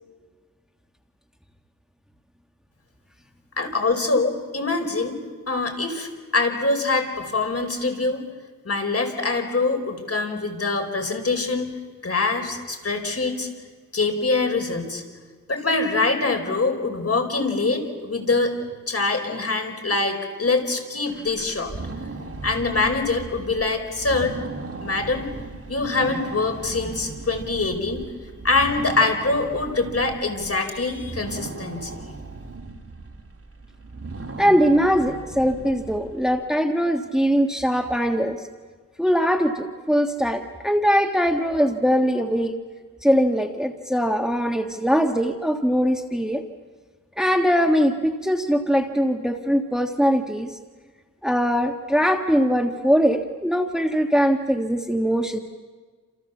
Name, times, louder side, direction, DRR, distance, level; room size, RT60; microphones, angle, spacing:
voice 1, 3.6-8.2 8.6-11.7 12.0-13.5 13.9-15.0 15.5-18.5 18.9-21.7 22.4-24.3 24.8-25.3 25.7-28.0 28.4-32.0, left 3 dB, 50° left, 4 dB, 4.9 m, -24 dB
sound 1, 21.1-36.5, right 3 dB, 45° right, 3.0 m, -37 dB
voice 2, 34.4-38.4 39.0-42.5 43.0-46.4 47.2-50.6 51.2-55.4, equal, ahead, 4 dB, 1.5 m, -21 dB
29.0 x 28.0 x 7.2 m, 1.5 s
wide cardioid pair, 90°, 32 cm